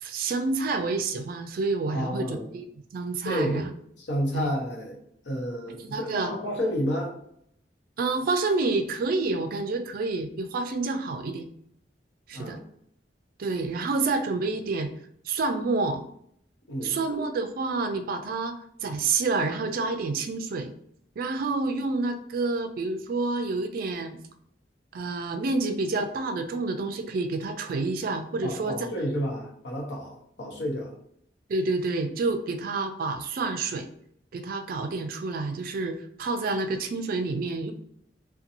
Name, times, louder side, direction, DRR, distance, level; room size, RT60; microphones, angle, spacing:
voice 1, 0.0-2.6 2.9-3.7 4.3-4.5 5.9-6.3 8.0-11.5 12.3-12.6 13.4-14.9 15.3-16.0 16.8-20.7 21.2-24.2 24.9-28.9 31.5-33.9 34.3-37.7, right 3 dB, 55° right, 7 dB, 0.3 m, -28 dB
voice 2, 1.9-2.5 3.2-3.7 4.0-5.0 5.2-7.1 12.3-12.6 16.7-17.0 28.4-30.9, equal, 75° left, -1 dB, 0.8 m, -30 dB
2.5 x 2.2 x 2.8 m, 0.69 s
head